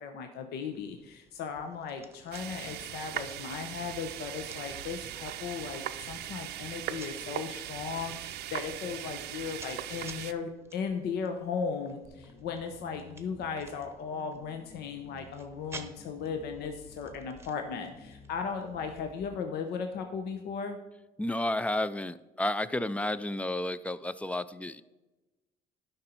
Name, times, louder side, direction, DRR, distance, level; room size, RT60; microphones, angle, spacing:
voice 1, 0.0-20.8, left 6 dB, 75° left, 5 dB, 0.8 m, -37 dB
sound 1, 0.7-19.2, right 3 dB, 15° right, 0.8 m, -54 dB
sound 2, 2.3-10.3, right 12 dB, 75° right, 0.6 m, -39 dB
sound 3, 12.0-19.4, left 3 dB, 55° left, 1.4 m, -54 dB
voice 2, 21.2-24.8, left 1 dB, 10° left, 15 dB, 0.3 m, -31 dB
12.0 x 5.4 x 4.4 m, 1.1 s
cardioid pair, 110°, 17 cm